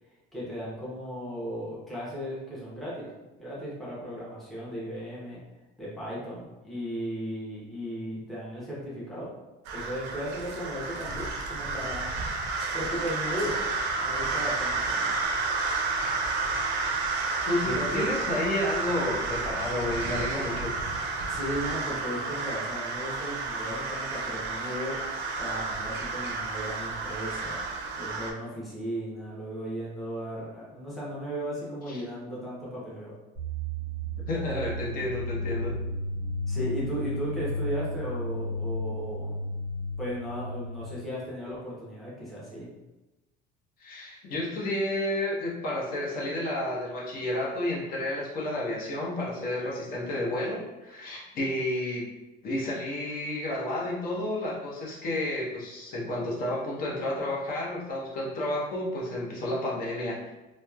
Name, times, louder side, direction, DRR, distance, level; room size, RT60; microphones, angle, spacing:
voice 1, 0.3-3.1 3.4-5.4 5.8-9.3 9.7-12.1 12.7-13.7 14.0-15.1 17.6-18.0 21.3-25.0 25.4-27.6 27.9-33.1 36.5-39.4 40.0-42.7, equal, ahead, -8 dB, 0.7 m, -36 dB
sound 1, 9.7-28.3, right 3 dB, 60° right, 0.4 m, -31 dB
voice 2, 17.5-20.7 31.9-32.0 34.3-35.7 43.8-52.1 52.4-60.3, left 1 dB, 45° left, -5 dB, 0.7 m, -31 dB
sound 2, 33.4-41.1, equal, 15° right, 1.1 m, -33 dB
2.9 x 2.0 x 2.3 m, 1.0 s
cardioid pair, 145°, 21 cm